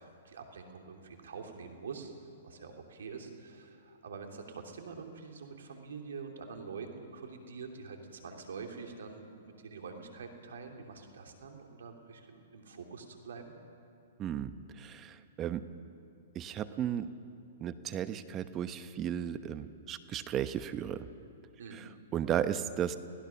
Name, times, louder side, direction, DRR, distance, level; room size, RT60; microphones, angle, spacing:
voice 1, 0.0-2.1 2.4-13.6 21.6-21.9, right 5 dB, 75° right, 3 dB, 3.0 m, -46 dB
voice 2, 14.2-14.5 14.8-15.6 16.3-17.1 17.6-21.1 22.1-23.0, right 10 dB, 30° right, 11 dB, 1.0 m, -34 dB
28.5 x 17.0 x 5.9 m, 2.5 s
hypercardioid pair, 120°, 0 cm